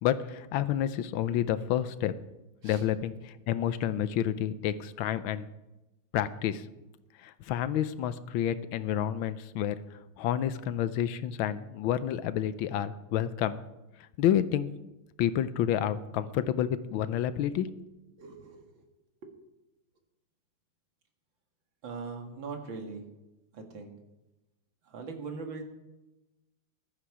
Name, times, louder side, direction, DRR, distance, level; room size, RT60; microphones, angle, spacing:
voice 1, 0.0-2.1 2.6-5.5 6.1-6.6 7.2-9.8 10.2-13.6 14.2-14.7 15.2-17.8, left 10 dB, 80° left, 13 dB, 1.5 m, -29 dB
voice 2, 18.2-18.9 19.2-19.3 21.8-23.1 23.5-23.9 24.8-25.6, right 4 dB, 65° right, 4 dB, 2.6 m, -41 dB
15.0 x 11.5 x 4.9 m, 0.99 s
omnidirectional pair, 2.3 m